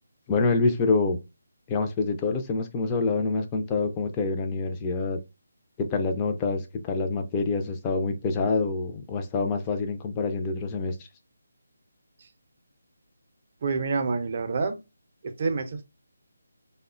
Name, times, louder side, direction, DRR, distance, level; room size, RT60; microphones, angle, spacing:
voice 1, 0.3-1.2 1.7-5.2 5.8-11.0, left 3 dB, 20° left, 0.4 m, -26 dB
voice 2, 13.6-14.8 15.2-15.8, right 4 dB, 40° right, 0.5 m, -27 dB
3.4 x 2.1 x 2.4 m
figure-of-eight pair, 150°, 0 cm